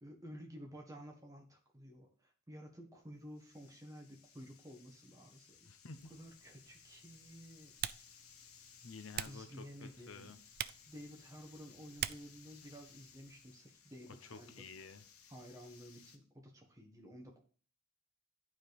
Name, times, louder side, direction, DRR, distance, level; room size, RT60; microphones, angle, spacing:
voice 1, 0.0-5.7 6.1-7.8 9.2-10.3 10.9-14.7 15.3-17.4, equal, 15° right, 2 dB, 1.5 m, -53 dB
sound 1, 2.9-16.2, left 7 dB, 85° left, 1.1 m, -62 dB
voice 2, 5.6-6.1 8.8-10.4 14.1-15.0, left 4 dB, 65° left, 10 dB, 0.8 m, -51 dB
Typing, 6.0-13.5, right 11 dB, 45° right, 0.3 m, -47 dB
9.3 x 5.1 x 4.1 m, 0.42 s
head